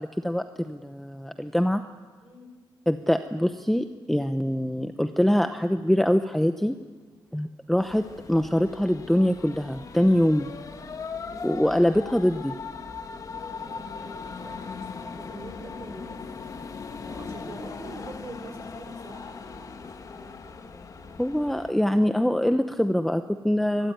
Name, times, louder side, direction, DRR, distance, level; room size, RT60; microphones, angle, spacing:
voice 1, 0.0-1.8 2.9-6.8 7.3-10.5 11.4-12.6 21.2-23.9, equal, ahead, 8 dB, 0.9 m, -24 dB
voice 2, 2.2-2.5 10.7-11.7 13.6-16.3 17.1-21.3 23.8-23.9, right 2 dB, 35° right, 3 dB, 7.0 m, -46 dB
sound 1, 7.8-21.7, left 5 dB, 40° left, 1.7 m, -39 dB
24.5 x 21.5 x 9.4 m, 1.4 s
wide cardioid pair, 130°, 9 cm